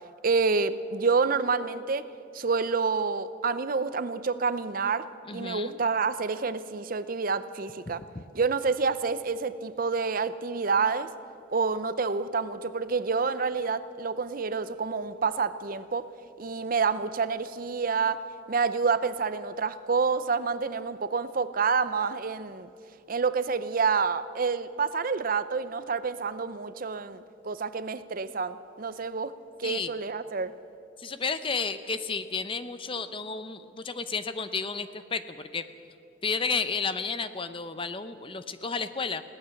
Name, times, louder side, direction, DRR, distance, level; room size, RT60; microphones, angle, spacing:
voice 1, 0.2-2.0 2.3-8.0 8.3-11.1 11.5-16.1 16.4-18.2 18.5-22.7 23.1-29.3 29.6-30.5, right 5 dB, 45° right, 13 dB, 0.6 m, -28 dB
voice 2, 5.3-5.8 8.1-8.2 29.6-29.9 31.0-35.6 36.2-39.2, left 4 dB, 25° left, 11 dB, 0.7 m, -32 dB
21.5 x 17.5 x 7.1 m, 2.6 s
head